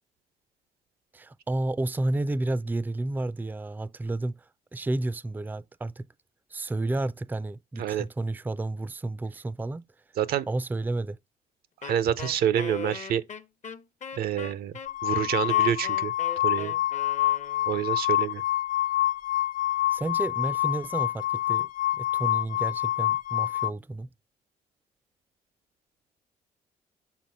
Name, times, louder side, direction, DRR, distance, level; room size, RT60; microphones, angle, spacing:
voice 1, 1.1-4.4 4.7-6.1 6.5-9.8 10.5-11.2 19.9-21.7 21.9-24.1, right 2 dB, 10° right, 0.4 m, -31 dB
voice 2, 10.2-10.5 11.8-13.2 14.2-14.7 15.0-16.1 16.4-16.7 17.7-18.4, right 10 dB, 75° right, 0.6 m, -27 dB
Wind instrument woodwind instrument, 11.8-17.9, left 6 dB, 50° left, 0.8 m, -40 dB
sound 1, 14.9-23.7, left 13 dB, 65° left, 0.5 m, -27 dB
6.1 x 4.1 x 5.5 m
supercardioid pair, 55°, 16 cm